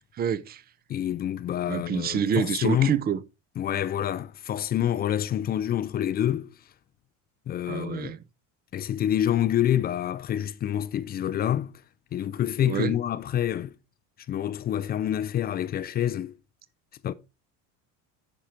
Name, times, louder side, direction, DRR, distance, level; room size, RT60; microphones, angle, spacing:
voice 1, 0.2-0.6 1.7-3.2 7.7-8.2 12.6-12.9, right 7 dB, 25° right, 0.6 m, -27 dB
voice 2, 0.9-3.0 3.6-6.5 7.5-8.1 8.7-11.7 12.1-13.7 14.3-16.3 17.0-17.1, left 11 dB, 25° left, 0.4 m, -27 dB
9.7 x 5.8 x 4.4 m
cardioid pair, 140°, 38 cm